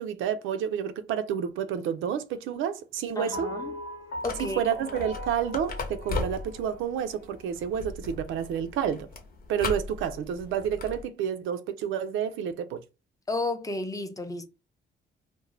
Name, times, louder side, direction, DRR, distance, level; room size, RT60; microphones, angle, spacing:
voice 1, 0.0-3.5 4.4-9.1 9.5-12.8, right 8 dB, 80° right, 0.4 m, -30 dB
voice 2, 3.2-3.8 4.2-4.6 13.3-14.5, left 2 dB, 15° left, 0.4 m, -32 dB
sound 1, 3.3-7.7, left 1 dB, 80° left, 0.9 m, -40 dB
sound 2, 4.2-11.0, left 3 dB, 50° left, 0.8 m, -38 dB
2.5 x 2.0 x 3.1 m
cardioid pair, 90°, 20 cm